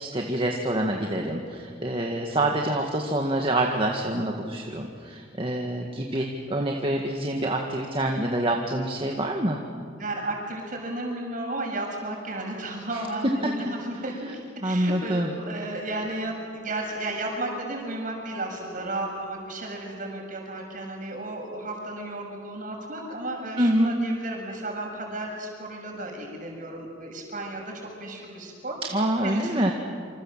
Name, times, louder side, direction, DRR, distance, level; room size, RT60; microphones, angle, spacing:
voice 1, 0.0-9.6 12.9-13.0 14.6-15.3 23.6-23.9 28.9-29.7, right 1 dB, 30° right, 1 dB, 1.9 m, -26 dB
voice 2, 10.0-27.7 28.0-28.8 29.2-29.5, right 2 dB, 45° right, 1 dB, 6.7 m, -33 dB
27.5 x 26.5 x 7.5 m, 2.3 s
head